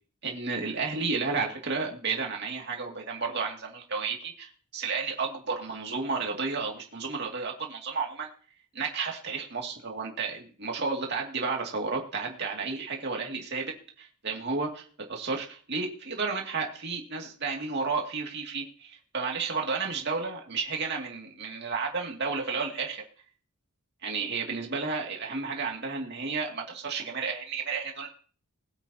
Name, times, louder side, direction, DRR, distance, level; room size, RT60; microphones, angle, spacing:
voice 1, 0.2-8.3 8.7-23.0 24.0-28.1, right 4 dB, 50° right, 0 dB, 2.4 m, -32 dB
21.5 x 8.3 x 2.8 m, 0.43 s
head